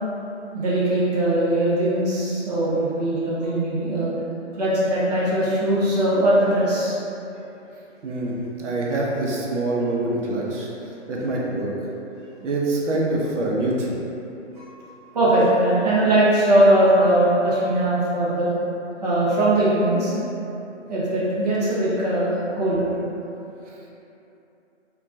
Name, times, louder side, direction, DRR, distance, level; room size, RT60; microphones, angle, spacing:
voice 1, 0.5-4.1 4.6-7.0 14.6-14.7 15.1-18.5 19.0-20.3 20.9-22.9, right 1 dB, 35° right, -9 dB, 0.6 m, -20 dB
voice 2, 8.0-10.7 11.1-11.7 12.4-14.0 23.7-23.8, right 2 dB, 75° right, -3 dB, 0.7 m, -25 dB
3.6 x 2.3 x 2.6 m, 2.9 s
hypercardioid pair, 165°, 36 cm